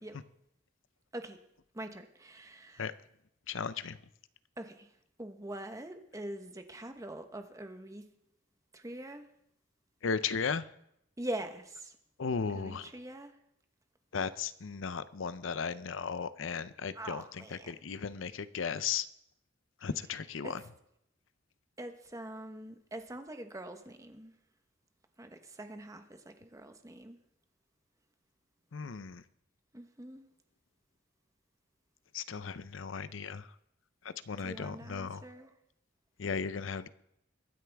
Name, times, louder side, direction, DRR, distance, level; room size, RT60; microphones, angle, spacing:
voice 1, 1.7-2.9 4.6-4.9 5.2-8.0 8.7-9.2 11.2-11.9 12.5-13.3 16.9-17.7 20.4-20.6 21.8-24.3 25.2-27.2 29.7-30.2 34.4-35.5, right 1 dB, 15° right, 7 dB, 1.0 m, -43 dB
voice 2, 3.5-4.0 10.0-10.6 12.2-12.9 14.1-17.2 17.5-19.1 19.8-20.6 28.7-29.2 32.1-33.4 34.3-35.2 36.2-36.9, left 6 dB, 85° left, 14 dB, 0.6 m, -35 dB
23.0 x 9.4 x 3.5 m, 0.76 s
head